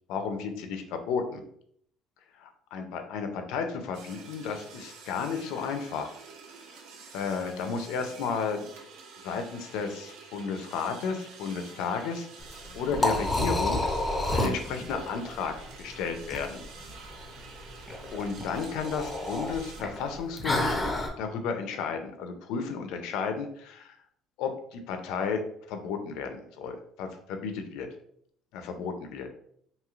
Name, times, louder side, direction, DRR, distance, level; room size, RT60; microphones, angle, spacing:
voice 1, 0.1-1.4 2.4-6.1 7.1-8.7 9.2-12.3 12.7-13.8 14.3-16.6 18.1-23.9 24.4-25.4 25.7-27.9 28.5-29.3, left 5 dB, 80° left, 6 dB, 0.5 m, -33 dB
sound 1, 3.9-19.8, right 4 dB, 80° right, 0.5 m, -49 dB
Liquid, 12.4-21.1, left 1 dB, 15° left, 0.5 m, -31 dB
3.0 x 2.7 x 2.4 m, 0.67 s
cardioid pair, 125°, 0 cm